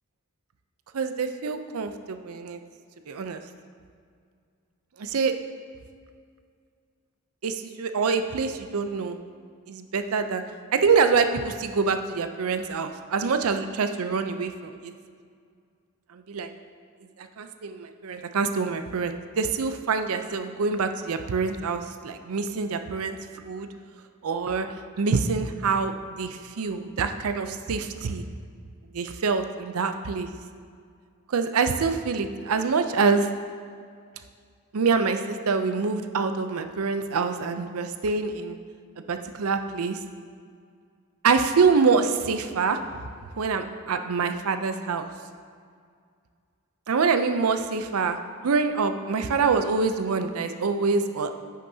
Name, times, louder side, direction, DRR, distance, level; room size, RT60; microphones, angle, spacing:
voice 1, 0.9-2.6 3.1-3.4 5.0-5.3 7.4-9.2 9.7-10.4 10.7-14.9 16.1-16.5 17.2-23.7 24.2-24.7 25.0-28.2 28.9-30.3 31.3-33.3 34.7-38.6 39.1-40.0 41.2-42.8 43.4-45.1 46.9-48.2 48.4-51.3, right 5 dB, 80° right, 8 dB, 0.5 m, -25 dB
10.0 x 6.4 x 2.7 m, 2.2 s
head